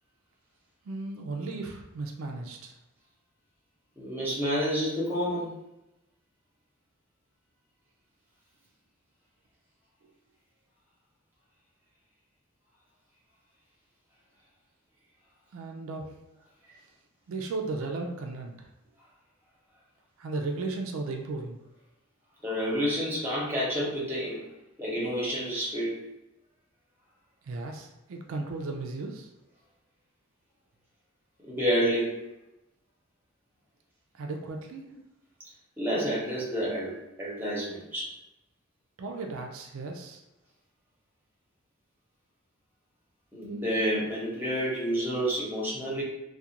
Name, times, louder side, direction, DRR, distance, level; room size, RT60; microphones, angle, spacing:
voice 1, 0.9-2.8 15.5-16.0 17.3-18.7 20.2-21.6 27.4-29.3 34.2-34.8 39.0-40.2, right 3 dB, 80° right, 3 dB, 0.3 m, -35 dB
voice 2, 4.0-5.5 22.4-24.4 24.8-26.0 31.4-32.2 35.8-36.9 37.2-38.1 43.3-46.0, equal, 10° right, -6 dB, 0.7 m, -29 dB
2.4 x 2.2 x 2.8 m, 0.93 s
head